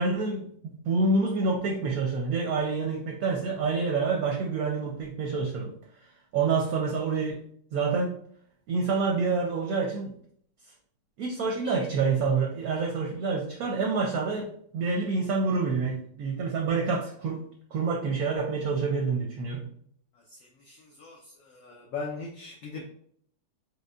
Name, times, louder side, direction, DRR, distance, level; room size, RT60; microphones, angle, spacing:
voice 1, 0.0-5.7 6.3-7.4 7.7-8.2 8.7-10.1 11.2-14.5 14.7-17.4 17.7-19.7, right 4 dB, 70° right, 0 dB, 0.9 m, -27 dB
voice 2, 20.3-22.9, left 4 dB, 75° left, -1 dB, 0.8 m, -40 dB
4.8 x 2.2 x 2.3 m, 0.64 s
omnidirectional pair, 1.9 m